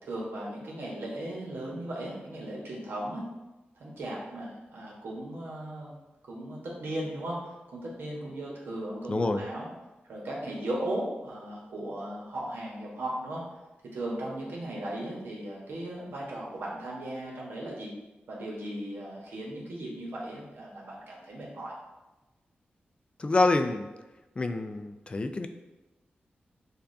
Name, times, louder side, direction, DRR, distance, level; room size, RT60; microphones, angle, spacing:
voice 1, 0.0-3.3 3.7-5.9 6.3-9.7 10.1-13.4 13.9-17.9 18.3-21.7, right 1 dB, 90° right, -3 dB, 1.1 m, -37 dB
voice 2, 9.1-9.4 23.2-23.9 24.4-25.5, left 2 dB, 30° left, 8 dB, 0.3 m, -27 dB
6.8 x 2.4 x 2.6 m, 1.1 s
wide cardioid pair, 100°, 4 cm